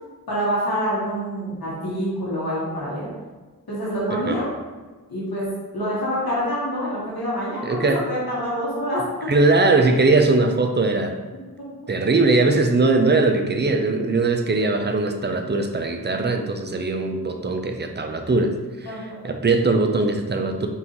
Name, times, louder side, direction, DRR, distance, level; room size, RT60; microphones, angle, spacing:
voice 1, 0.3-3.1 3.7-4.5 5.1-5.5 5.7-7.8 8.1-9.0 18.8-19.2, equal, 80° left, -8 dB, 1.4 m, -26 dB
voice 2, 7.6-8.0 9.3-11.2 11.9-20.7, right 3 dB, 30° right, 4 dB, 0.5 m, -20 dB
5.3 x 2.6 x 3.0 m, 1.3 s
wide cardioid pair, 45°, 37 cm